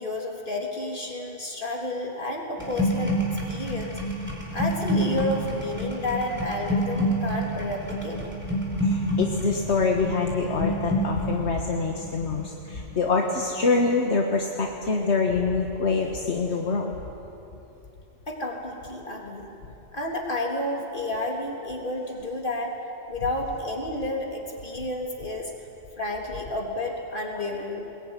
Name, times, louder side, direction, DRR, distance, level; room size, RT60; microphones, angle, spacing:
voice 1, 0.0-4.0 4.5-8.2 18.3-19.5 19.9-22.8 23.1-25.5 26.0-27.9, left 1 dB, 45° left, -1 dB, 3.6 m, -31 dB
sound 1, 2.6-14.5 14.7-15.1, equal, 10° right, 4.4 m, -28 dB
voice 2, 8.8-17.0, left 4 dB, 65° left, 1 dB, 1.8 m, -25 dB
21.5 x 21.0 x 9.8 m, 2.9 s
omnidirectional pair, 1.2 m